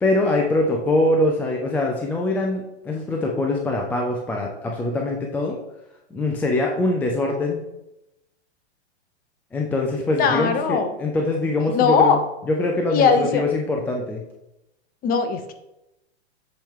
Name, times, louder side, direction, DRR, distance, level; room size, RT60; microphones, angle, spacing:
voice 1, 0.0-5.6 6.1-7.6 9.5-12.2 12.5-14.2, left 2 dB, 5° left, 0 dB, 0.3 m, -23 dB
voice 2, 10.2-10.9 11.7-12.2 12.9-13.4 15.0-15.5, left 5 dB, 25° left, 7 dB, 0.7 m, -19 dB
7.3 x 4.5 x 3.5 m, 0.90 s
hypercardioid pair, 125°, 34 cm